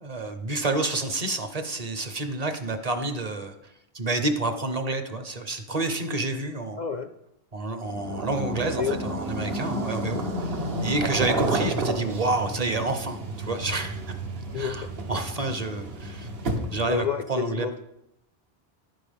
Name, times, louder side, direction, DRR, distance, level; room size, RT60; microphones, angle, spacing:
voice 1, 0.0-6.8 7.5-14.2 14.5-16.3 16.7-17.7, right 2 dB, 40° right, 8 dB, 0.8 m, -29 dB
voice 2, 6.8-7.1 8.6-9.0 14.5-14.8 16.9-17.8, left 6 dB, 55° left, 8 dB, 0.5 m, -29 dB
sound 1, 7.8-17.0, right 1 dB, 70° right, 1.3 m, -31 dB
11.0 x 9.2 x 3.5 m, 0.83 s
omnidirectional pair, 1.1 m